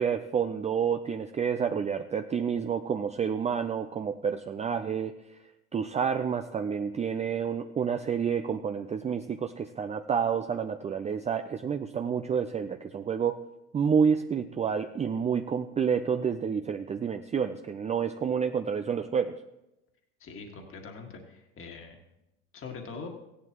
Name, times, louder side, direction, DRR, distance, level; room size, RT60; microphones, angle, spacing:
voice 1, 0.0-5.1 5.7-13.4 13.7-19.4, right 7 dB, 20° right, 6 dB, 0.5 m, -29 dB
voice 2, 20.2-22.0 22.5-23.1, left 4 dB, 35° left, 2 dB, 1.9 m, -43 dB
16.0 x 11.0 x 3.0 m, 0.92 s
hypercardioid pair, 90°, 37 cm